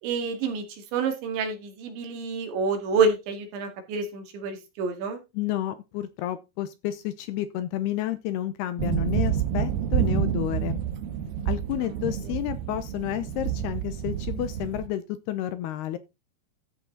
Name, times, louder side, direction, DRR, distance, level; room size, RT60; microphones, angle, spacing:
voice 1, 0.0-5.2, right 4 dB, 80° right, 4.6 m, -28 dB
voice 2, 5.3-10.8 11.5-16.0, left 13 dB, 75° left, 2.5 m, -31 dB
sound 1, 8.8-14.9, right 9 dB, 65° right, 2.9 m, -28 dB
14.0 x 6.7 x 3.9 m
omnidirectional pair, 5.2 m